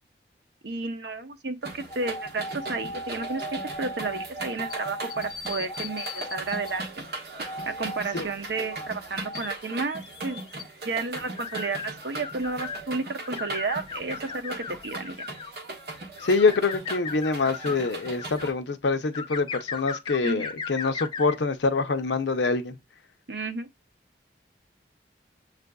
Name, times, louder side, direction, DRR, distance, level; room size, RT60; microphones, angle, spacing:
voice 1, 0.6-7.0 7.7-10.4 10.8-15.2 20.2-20.5 23.3-23.7, right 3 dB, 80° right, 0.7 m, -32 dB
sound 1, 1.6-18.5, right 2 dB, 60° right, 1.1 m, -39 dB
sound 2, 1.8-6.8 7.5-8.0 8.5-8.9 9.2-12.8 13.2-15.6 16.2-18.5 19.1-21.4, left 4 dB, 25° left, 0.4 m, -37 dB
voice 2, 16.2-22.8, left 4 dB, 90° left, 0.6 m, -25 dB
7.2 x 2.5 x 2.2 m
head